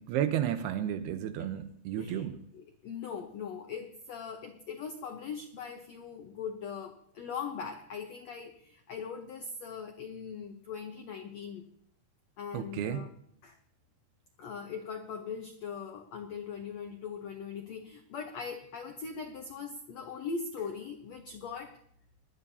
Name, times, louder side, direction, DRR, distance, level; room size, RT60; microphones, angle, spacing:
voice 1, 0.1-2.4 12.5-13.0, right 10 dB, 90° right, 9 dB, 2.9 m, -32 dB
voice 2, 2.5-11.6 12.4-13.1 13.4-13.6 14.4-21.8, left 6 dB, 80° left, 4 dB, 1.5 m, -40 dB
21.0 x 12.5 x 2.8 m, 0.65 s
omnidirectional pair, 4.5 m